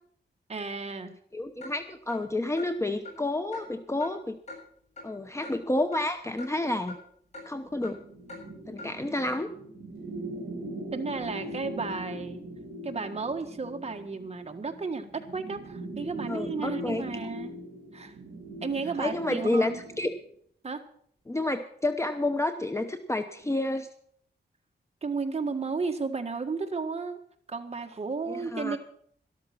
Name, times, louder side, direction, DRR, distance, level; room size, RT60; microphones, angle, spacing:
voice 1, 0.5-1.1 10.9-12.4 12.8-17.6 17.9-18.1 18.6-19.8 20.6-20.8 25.0-27.2 27.5-28.8, right 4 dB, 35° right, 5 dB, 1.6 m, -33 dB
voice 2, 1.3-4.4 5.0-7.0 7.5-8.0 8.7-9.5 16.3-17.0 19.0-20.1 21.3-23.9 28.3-28.8, left 2 dB, 15° left, 7 dB, 0.8 m, -30 dB
Clock, 1.6-1.7 2.1-2.2 2.6-2.7 3.0-3.2 3.5-3.6 4.0-4.1 4.5-4.6 5.0-5.1 5.4-5.6 5.9-6.0 6.4-6.5 6.9-7.0 7.3-7.5 7.8-7.9 8.3-8.4 8.8-8.9, left 2 dB, 40° left, 7.3 m, -42 dB
sound 1, 7.8-20.2, right 1 dB, 55° right, 2.6 m, -40 dB
13.0 x 12.5 x 6.0 m, 0.63 s
wide cardioid pair, 125°, 18 cm